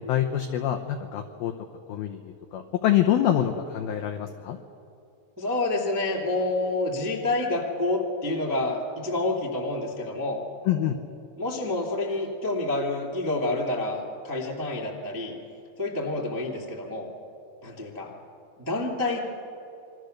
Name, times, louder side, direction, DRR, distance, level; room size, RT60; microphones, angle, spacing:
voice 1, 0.1-1.5 1.9-4.6 10.7-11.0, left 11 dB, 90° left, 5 dB, 2.1 m, -25 dB
voice 2, 5.4-10.4 11.4-15.3 15.8-17.1 17.6-18.1 18.6-19.2, left 2 dB, 15° right, -1 dB, 0.6 m, -28 dB
27.5 x 22.5 x 6.6 m, 2.6 s
omnidirectional pair, 5.6 m